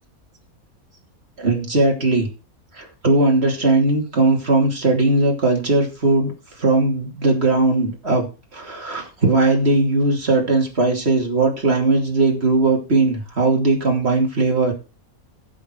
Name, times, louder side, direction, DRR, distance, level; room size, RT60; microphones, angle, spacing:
voice 1, 1.4-2.3 2.7-8.3 8.5-14.7, right 2 dB, 45° right, 1 dB, 3.1 m, -19 dB
14.5 x 6.6 x 4.6 m, 0.31 s
omnidirectional pair, 1.5 m